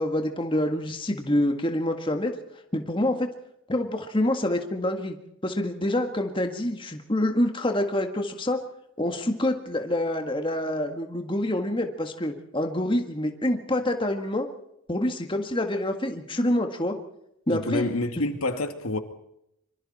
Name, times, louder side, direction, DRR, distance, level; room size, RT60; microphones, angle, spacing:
voice 1, 0.0-2.3 2.7-3.3 3.7-5.2 5.4-8.6 9.0-14.5 14.9-16.9 17.5-17.8, left 1 dB, 25° left, 1.8 m, -26 dB
voice 2, 17.5-19.0, left 2 dB, 80° left, 2.2 m, -27 dB
25.0 x 24.5 x 4.3 m
head